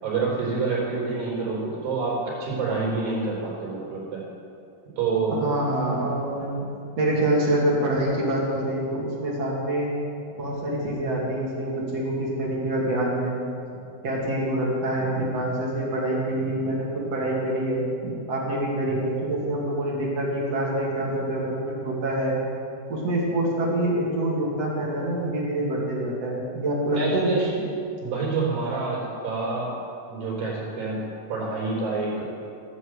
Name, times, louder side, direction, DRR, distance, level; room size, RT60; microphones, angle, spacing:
voice 1, 0.0-4.2 5.0-5.6 26.9-27.6 28.0-29.8 30.1-31.0 31.3-32.2, right 4 dB, 65° right, -5 dB, 5.9 m, -27 dB
voice 2, 5.3-6.5 7.0-9.9 10.4-13.5 14.0-22.4 22.9-27.3, right 1 dB, 45° right, -4 dB, 3.1 m, -26 dB
17.0 x 8.1 x 8.0 m, 2.6 s
omnidirectional pair, 4.4 m